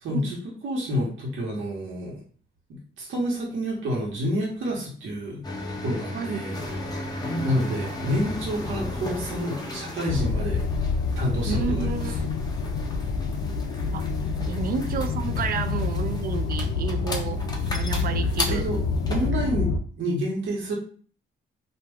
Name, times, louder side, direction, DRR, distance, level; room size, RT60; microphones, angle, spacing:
voice 1, 0.0-0.4 0.6-2.2 2.7-5.4 5.8-7.1 7.4-10.6 11.2-12.0 18.5-18.8 19.1-20.7, equal, 70° right, -3 dB, 1.0 m, -29 dB
sound 1, 5.4-19.3, left 1 dB, 20° left, 0.7 m, -35 dB
voice 2, 6.1-6.4 11.5-12.4 13.9-14.1 14.5-17.4 17.7-18.7, right 7 dB, 50° right, 10 dB, 0.4 m, -31 dB
sound 2, 10.1-19.8, left 4 dB, 65° left, 0.4 m, -27 dB
2.3 x 2.3 x 3.4 m, 0.44 s
cardioid pair, 90°, 20 cm